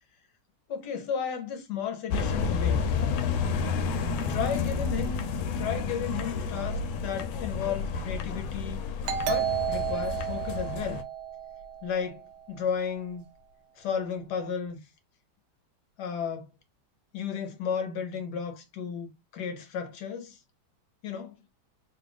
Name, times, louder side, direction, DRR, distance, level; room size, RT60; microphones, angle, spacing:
voice 1, 0.7-3.0 4.3-8.8 9.2-11.0 11.8-12.2 12.5-13.2 13.8-14.8 16.0-16.5 17.1-20.4 21.0-21.4, left 7 dB, 65° left, 1.3 m, -33 dB
sound 1, 2.1-11.0, left 5 dB, 90° left, 1.4 m, -30 dB
Doorbell, 9.0-12.4, right 10 dB, 90° right, 1.5 m, -32 dB
3.8 x 2.3 x 3.4 m
omnidirectional pair, 2.2 m